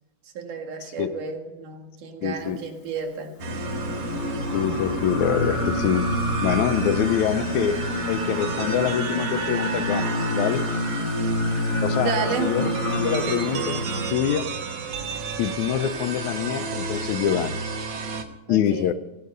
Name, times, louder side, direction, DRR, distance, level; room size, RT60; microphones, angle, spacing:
voice 1, 0.3-3.4 12.0-12.5 18.5-18.9, right 4 dB, 90° right, 4 dB, 3.5 m, -31 dB
voice 2, 2.2-2.6 4.5-6.0 6.4-7.8 8.1-10.6 11.8-12.1 12.4-12.7 13.0-13.9 14.1-14.5 15.4-17.6 18.5-18.9, left 9 dB, 75° left, 12 dB, 2.1 m, -25 dB
Singing, 3.4-14.1, left 1 dB, 35° left, 2.5 m, -28 dB
sound 1, 3.4-18.2, right 5 dB, 60° right, 2.1 m, -32 dB
16.5 x 16.0 x 5.4 m, 1.0 s
omnidirectional pair, 3.5 m